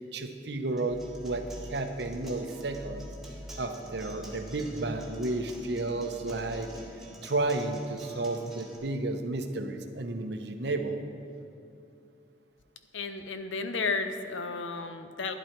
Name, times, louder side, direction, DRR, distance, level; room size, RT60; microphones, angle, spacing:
voice 1, 0.0-3.1 3.6-6.7 7.2-11.0, right 2 dB, 60° right, 6 dB, 0.8 m, -32 dB
Acoustic guitar, 0.8-8.8, equal, ahead, 1.5 m, -48 dB
sound 1, 0.9-6.5, equal, 25° left, 1.1 m, -47 dB
voice 2, 12.9-15.3, left 4 dB, 85° left, 8 dB, 0.8 m, -33 dB
11.5 x 10.5 x 4.5 m, 2.5 s
head